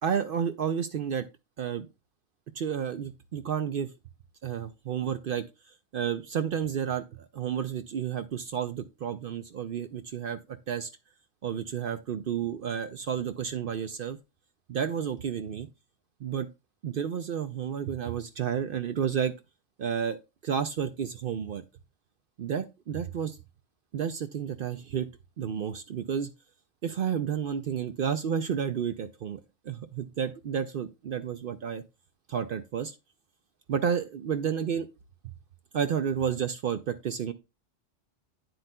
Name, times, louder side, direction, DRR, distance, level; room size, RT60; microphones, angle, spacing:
voice 1, 0.0-1.3 1.6-1.9 2.5-3.9 4.4-5.4 5.9-10.9 11.4-14.2 14.7-15.7 16.2-16.5 16.8-19.3 19.8-20.2 20.4-21.6 22.4-23.4 23.9-25.1 25.4-26.3 26.8-31.8 32.3-33.0 33.7-34.9 35.2-35.3 35.7-37.3, right 8 dB, 60° right, 0.6 m, -31 dB
9.4 x 7.8 x 2.2 m
omnidirectional pair, 1.2 m